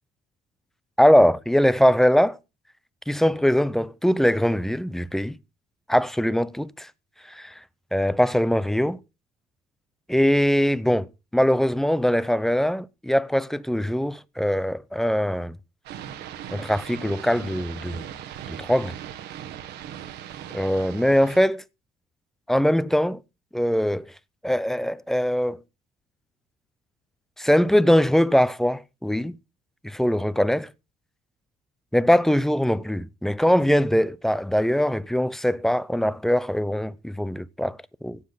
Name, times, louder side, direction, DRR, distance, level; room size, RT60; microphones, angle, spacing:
voice 1, 1.0-2.4 3.1-5.4 5.9-6.9 7.3-7.6 7.9-9.0 10.1-15.6 16.5-18.0 18.5-18.9 20.5-21.6 22.5-23.2 23.5-24.1 24.4-25.6 27.4-29.3 29.8-30.7 31.9-38.2, equal, ahead, 0.5 m, -22 dB
sound 1, 15.8-21.4, right 10 dB, 80° right, 1.4 m, -39 dB
16.5 x 7.4 x 4.0 m
cardioid pair, 110°, 17 cm